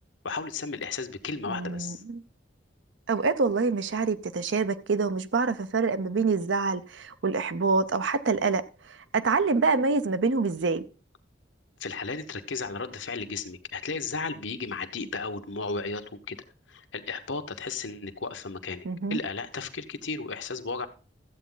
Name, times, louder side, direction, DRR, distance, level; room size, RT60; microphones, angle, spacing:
voice 1, 0.2-2.0 11.8-16.4 16.7-20.9, left 4 dB, 85° left, 1.2 m, -34 dB
voice 2, 1.5-2.2 3.1-8.6 9.1-10.8 18.8-19.2, right 4 dB, 80° right, 0.7 m, -26 dB
13.5 x 8.2 x 3.9 m
head